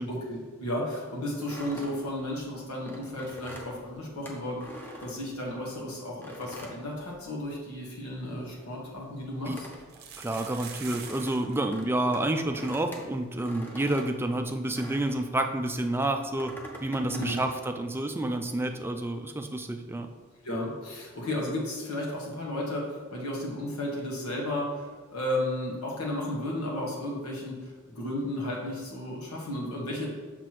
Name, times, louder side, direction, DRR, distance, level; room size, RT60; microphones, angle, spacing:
voice 1, 0.1-9.5 17.1-17.4 20.4-30.1, left 1 dB, 85° left, -4 dB, 1.7 m, -33 dB
sound 1, 1.4-5.7 6.2-7.7 8.0-15.3 15.9-17.6, right 1 dB, 10° left, 0.9 m, -45 dB
sound 2, 8.2-8.3 8.6-8.7 9.8-11.6 11.8-11.9 12.1-12.4 12.9-13.0 13.3-13.4 15.4-15.5, right 7 dB, 45° right, 0.8 m, -44 dB
voice 2, 10.2-20.1, right 1 dB, 10° right, 5 dB, 0.4 m, -29 dB
6.7 x 6.0 x 3.2 m, 1.5 s
head